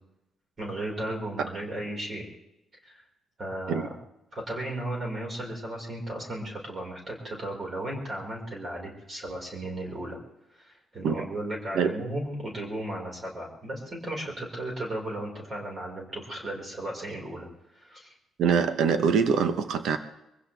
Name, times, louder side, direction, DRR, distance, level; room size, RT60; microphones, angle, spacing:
voice 1, 0.6-2.2 2.8-2.9 3.4-3.9 4.3-10.2 10.5-17.5 17.7-18.1, right 1 dB, 30° right, -1 dB, 5.3 m, -35 dB
voice 2, 18.4-20.0, right 6 dB, 75° right, 9 dB, 1.1 m, -24 dB
24.0 x 16.0 x 3.5 m, 0.87 s
cardioid pair, 140°, 0 cm